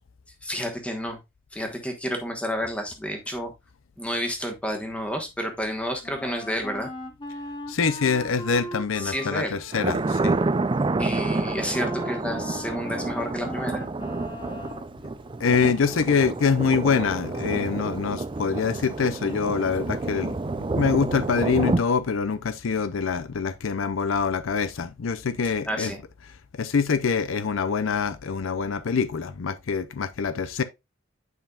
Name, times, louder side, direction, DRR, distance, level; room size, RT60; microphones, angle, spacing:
voice 1, 0.4-1.2 1.5-3.5 4.0-6.9 9.0-9.6 11.0-13.8 25.7-26.0, equal, 5° left, 1.2 m, -30 dB
Wind instrument woodwind instrument, 6.0-14.9, left 1 dB, 25° left, 0.9 m, -39 dB
voice 2, 7.7-10.4 15.4-25.9 26.3-30.6, left 5 dB, 70° left, 0.5 m, -25 dB
Thunder, 9.7-21.8, right 3 dB, 25° right, 0.4 m, -29 dB
9.4 x 5.5 x 2.4 m
head